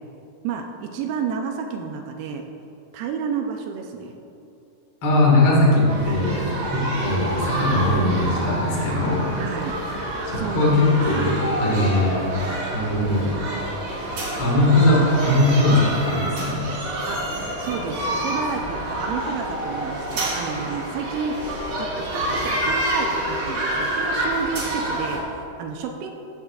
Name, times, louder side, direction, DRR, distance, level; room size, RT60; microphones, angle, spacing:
voice 1, 0.4-2.4 2.9-4.1 9.4-9.7 10.4-11.0 17.1-17.2 17.6-21.4 21.8-26.1, right 6 dB, 90° right, 3 dB, 2.5 m, -30 dB
voice 2, 5.0-9.3 10.2-12.2 12.7-13.3 14.4-16.6, left 1 dB, 45° left, -4 dB, 2.1 m, -20 dB
sound 1, 5.9-25.2, right 1 dB, 55° right, 2.5 m, -28 dB
14.5 x 7.2 x 2.3 m, 2.7 s
omnidirectional pair, 4.2 m